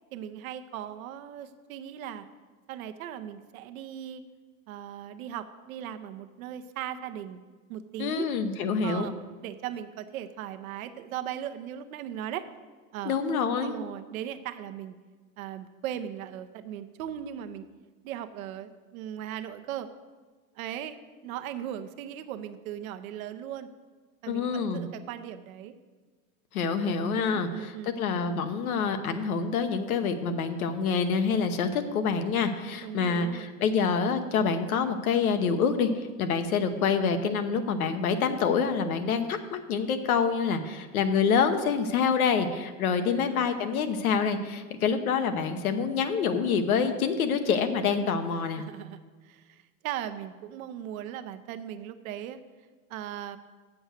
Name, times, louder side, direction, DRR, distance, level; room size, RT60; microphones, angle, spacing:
voice 1, 0.1-2.3 2.7-4.2 4.7-7.4 7.7-8.3 8.8-9.1 9.4-12.5 12.9-13.2 13.6-14.9 15.4-17.6 18.0-19.9 20.6-23.7 24.2-25.7 26.8-28.0 32.8-33.5 43.0-43.4 44.8-45.0 48.3-52.4 52.9-53.4, right 10 dB, 75° right, 10 dB, 0.8 m, -38 dB
voice 2, 8.0-9.1 13.0-13.7 24.3-24.8 26.5-27.7 28.0-48.6, left 5 dB, 90° left, 8 dB, 1.0 m, -26 dB
8.0 x 7.1 x 6.5 m, 1.4 s
supercardioid pair, 125°, 42 cm